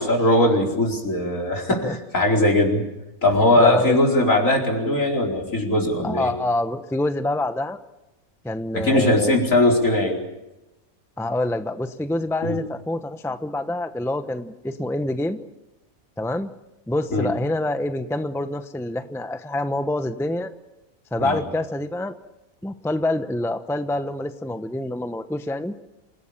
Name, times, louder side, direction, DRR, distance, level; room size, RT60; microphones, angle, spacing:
voice 1, 0.0-2.9 3.2-6.3 8.7-10.2 12.4-12.6 17.1-17.3 21.2-21.4, left 1 dB, 65° left, 1 dB, 5.0 m, -20 dB
voice 2, 3.6-4.0 6.0-7.8 8.4-9.3 11.2-15.4 16.2-16.5 16.9-20.5 21.1-22.2 22.6-25.7, left 1 dB, ahead, 9 dB, 0.8 m, -26 dB
27.5 x 17.5 x 8.8 m, 0.99 s
omnidirectional pair, 1.5 m